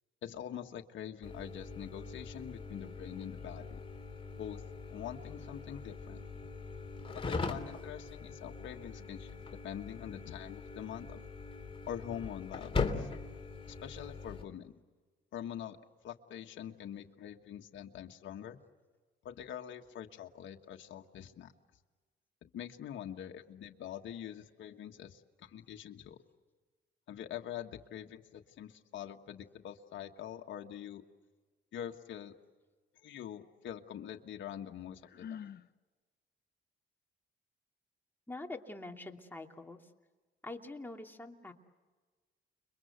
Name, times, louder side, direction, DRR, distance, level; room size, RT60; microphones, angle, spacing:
voice 1, 0.2-3.8 4.4-4.6 4.9-6.2 7.1-11.2 11.9-13.1 13.7-14.7 15.3-15.8 16.0-18.6 19.2-21.5 22.4-26.2 27.1-31.0 31.7-32.3 33.0-35.5, left 10 dB, 70° left, 3 dB, 1.5 m, -44 dB
sound 1, 1.2-14.4, left 4 dB, 25° left, 3.3 m, -41 dB
Sigh, 35.0-35.7, left 8 dB, 55° left, 0.9 m, -45 dB
voice 2, 38.3-39.9 40.4-41.5, left 2 dB, 10° left, 2 dB, 2.8 m, -45 dB
30.0 x 23.0 x 8.1 m, 1.3 s
cardioid pair, 90°, 20 cm